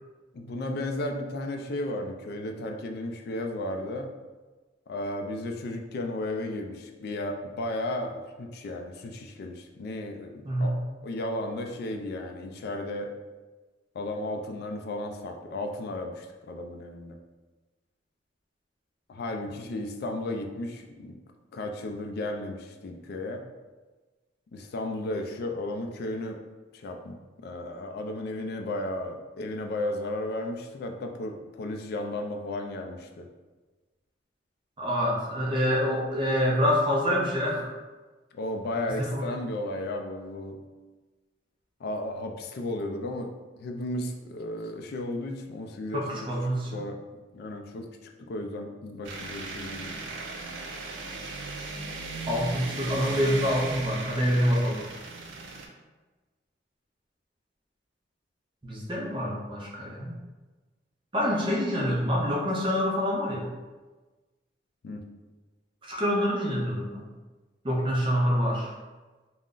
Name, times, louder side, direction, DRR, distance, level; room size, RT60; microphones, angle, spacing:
voice 1, 0.3-4.1 4.9-13.1 13.9-17.2 19.1-21.2 21.5-23.4 24.5-26.4 26.7-27.1 27.4-33.3 38.3-40.6 41.8-43.3 43.6-46.3 46.7-47.9 48.2-50.0 64.8-65.0, left 1 dB, 55° left, 3 dB, 0.3 m, -34 dB
voice 2, 34.8-37.7 38.9-39.3 45.9-46.7 52.3-54.8 58.6-60.1 61.1-63.5 65.8-67.1 67.6-68.7, equal, 25° right, -3 dB, 0.5 m, -26 dB
sound 1, 49.0-55.7, right 3 dB, 80° right, 0.4 m, -37 dB
2.4 x 2.0 x 3.6 m, 1.3 s
head